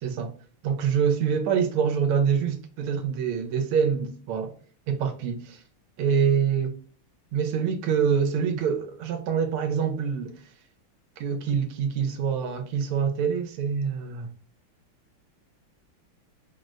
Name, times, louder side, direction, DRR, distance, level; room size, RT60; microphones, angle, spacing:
voice 1, 0.0-0.3 0.6-4.5 4.9-5.6 6.0-6.7 7.3-10.4 11.2-14.3, right 7 dB, 85° right, 1.6 m, -25 dB
4.7 x 2.1 x 3.7 m
omnidirectional pair, 2.4 m